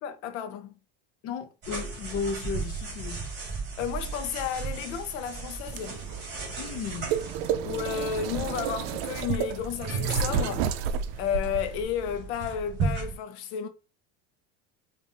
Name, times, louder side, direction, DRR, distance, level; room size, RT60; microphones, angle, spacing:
voice 1, 0.0-0.7 3.8-6.0 7.6-10.7 11.2-13.7, left 8 dB, 85° left, 0.8 m, -32 dB
voice 2, 1.2-3.2 6.5-7.1, left 6 dB, 45° left, 0.7 m, -34 dB
sound 1, 1.6-13.2, right 4 dB, 30° right, 2.1 m, -36 dB
sound 2, 5.7-11.8, right 8 dB, 75° right, 0.5 m, -31 dB
5.2 x 2.6 x 2.6 m
cardioid pair, 150°, 33 cm